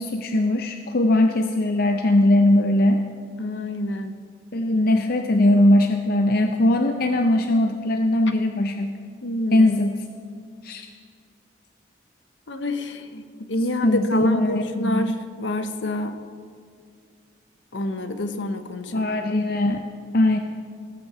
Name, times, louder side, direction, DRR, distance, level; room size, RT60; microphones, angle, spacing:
voice 1, 0.0-3.0 4.5-9.0 9.5-10.0 10.6-10.9 13.8-15.1 18.9-19.8 20.1-20.4, left 1 dB, 50° left, 5 dB, 0.5 m, -20 dB
voice 2, 3.4-4.1 9.2-9.7 12.5-16.2 17.7-19.1, left 1 dB, 70° left, 9 dB, 0.9 m, -27 dB
17.5 x 6.0 x 7.4 m, 2.2 s
head